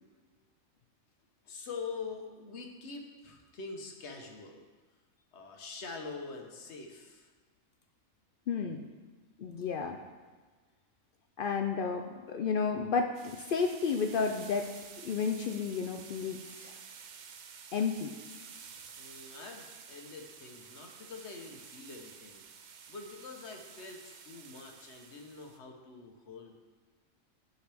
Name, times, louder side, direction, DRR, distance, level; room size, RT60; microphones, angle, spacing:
voice 1, 1.4-4.7 5.3-7.3 19.0-22.4 22.9-26.5, left 4 dB, 55° left, 3 dB, 1.2 m, -45 dB
voice 2, 8.5-8.8 9.4-10.0 11.4-14.7 15.0-16.7 17.7-18.1, left 5 dB, 75° left, 4 dB, 0.4 m, -32 dB
sound 1, 13.1-25.6, right 6 dB, 75° right, 0.4 m, -51 dB
10.5 x 6.5 x 3.4 m, 1.4 s
omnidirectional pair, 1.4 m